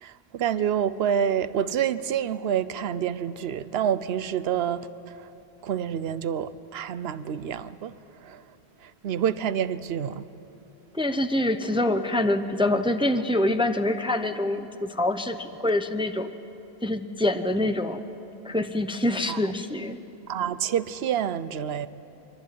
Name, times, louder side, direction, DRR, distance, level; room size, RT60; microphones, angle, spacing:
voice 1, 0.0-4.9 5.6-7.9 8.2-8.4 9.0-10.2 19.3-19.4 20.3-21.9, right 9 dB, 70° right, 1.0 m, -27 dB
voice 2, 10.9-16.3 16.8-18.0 18.4-20.0, left 1 dB, 5° right, 0.8 m, -25 dB
26.0 x 23.0 x 9.4 m
omnidirectional pair, 1.1 m